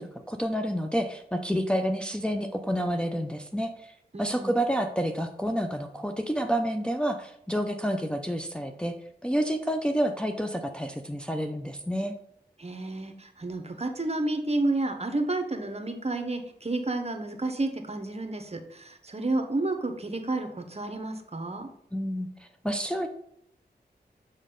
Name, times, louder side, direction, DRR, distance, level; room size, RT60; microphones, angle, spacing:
voice 1, 0.0-3.9 4.2-8.9 9.2-12.2 21.9-23.1, equal, 5° left, 4 dB, 0.6 m, -29 dB
voice 2, 4.1-4.5 12.6-21.7, right 2 dB, 35° right, 6 dB, 1.0 m, -31 dB
6.2 x 5.1 x 3.9 m, 0.74 s
cardioid pair, 50°, 18 cm